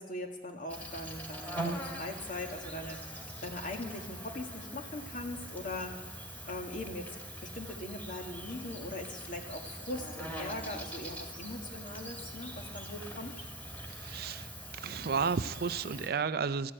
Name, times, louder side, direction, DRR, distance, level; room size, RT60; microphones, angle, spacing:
voice 1, 0.0-7.1 7.4-13.4, left 1 dB, 50° left, 3 dB, 1.9 m, -41 dB
Insect, 0.7-16.1, right 1 dB, 10° left, 2.4 m, -43 dB
voice 2, 13.9-16.7, right 5 dB, 60° right, 14 dB, 0.5 m, -33 dB
13.5 x 11.0 x 8.8 m, 1.2 s
head